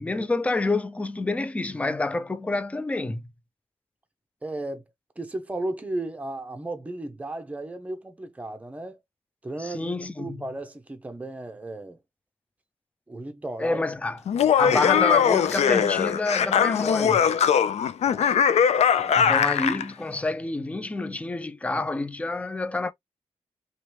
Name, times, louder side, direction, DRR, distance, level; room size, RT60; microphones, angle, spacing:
voice 1, 0.0-3.2 9.6-10.4 13.6-14.2 14.6-17.2 19.2-22.9, left 2 dB, 10° left, 0.4 m, -28 dB
voice 2, 4.4-4.8 5.2-9.0 9.4-12.0 13.1-13.8 14.4-14.8 18.0-18.4 19.0-19.3, right 2 dB, 10° right, 0.8 m, -35 dB
Laughter, 14.3-19.8, left 8 dB, 75° left, 0.4 m, -21 dB
3.1 x 3.0 x 3.1 m
wide cardioid pair, 150°, 11 cm